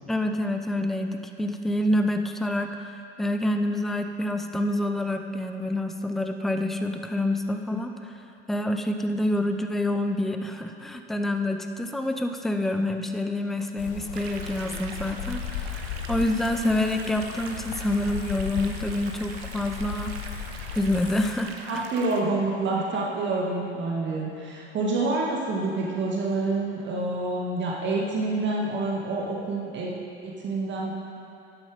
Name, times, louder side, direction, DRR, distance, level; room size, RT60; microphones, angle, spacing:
voice 1, 0.1-20.1 20.8-21.8, left 1 dB, ahead, 6 dB, 0.6 m, -27 dB
sound 1, 13.8-21.3, left 9 dB, 55° left, 1.0 m, -36 dB
sound 2, 14.1-22.2, right 5 dB, 65° right, 1.1 m, -42 dB
voice 2, 21.7-29.9 30.2-30.9, right 2 dB, 35° right, -3 dB, 1.9 m, -27 dB
11.5 x 10.5 x 5.0 m, 2.8 s
figure-of-eight pair, 75°, 33 cm